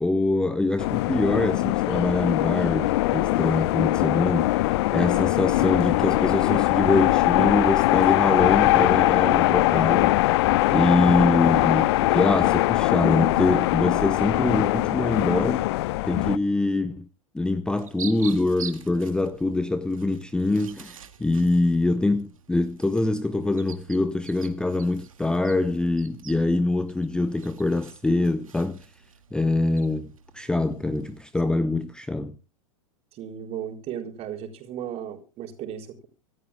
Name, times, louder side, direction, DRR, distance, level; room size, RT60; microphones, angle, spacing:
voice 1, 0.0-4.6 4.9-10.2 10.7-15.7 16.1-17.1 17.3-28.8 29.3-32.3, left 2 dB, 5° left, 0.8 m, -24 dB
sound 1, 0.8-16.4, left 18 dB, 50° left, 0.7 m, -21 dB
sound 2, 17.8-31.2, right 7 dB, 70° right, 2.0 m, -46 dB
voice 2, 33.1-36.1, right 9 dB, 35° right, 4.5 m, -35 dB
26.0 x 13.5 x 2.2 m
figure-of-eight pair, 95°, 18 cm